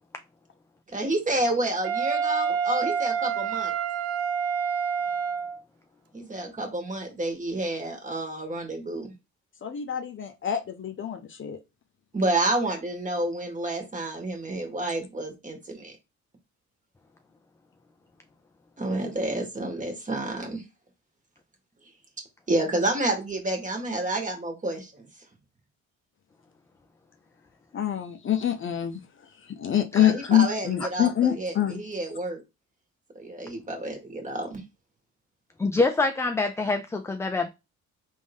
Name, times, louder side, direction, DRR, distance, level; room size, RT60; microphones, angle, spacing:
voice 1, 0.9-3.8 6.1-9.1 12.1-15.9 18.8-20.6 22.5-25.1 30.0-32.4 33.1-34.6, right 1 dB, 25° right, 1.5 m, -29 dB
Wind instrument woodwind instrument, 1.8-5.6, right 7 dB, 55° right, 0.5 m, -27 dB
voice 2, 9.6-11.6 27.7-29.0 29.5-31.8, left 10 dB, 40° left, 0.7 m, -25 dB
voice 3, 35.6-37.5, left 3 dB, 10° left, 0.3 m, -25 dB
3.6 x 2.6 x 3.4 m
cardioid pair, 90°, 30 cm